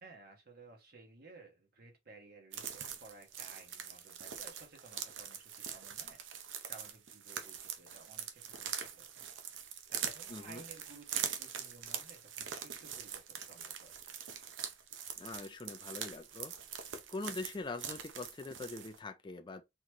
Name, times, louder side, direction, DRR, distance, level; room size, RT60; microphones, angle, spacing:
voice 1, 0.0-6.2 6.6-13.9, right 3 dB, 55° right, 1.3 m, -57 dB
sound 1, 2.5-19.0, right 8 dB, 80° right, 0.7 m, -43 dB
voice 2, 10.3-10.6 15.2-19.6, left 3 dB, 25° left, 0.4 m, -43 dB
4.1 x 3.1 x 2.9 m
head